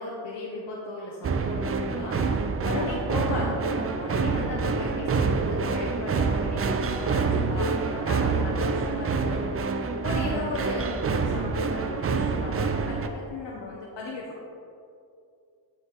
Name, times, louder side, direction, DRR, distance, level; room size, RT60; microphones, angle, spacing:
voice 1, 0.0-9.4 10.0-14.4, left 3 dB, 70° left, -3 dB, 0.9 m, -36 dB
sound 1, 1.2-13.1, right 4 dB, 35° right, 0.4 m, -27 dB
8.0 x 3.9 x 3.9 m, 2.5 s
cardioid pair, 100°, 45 cm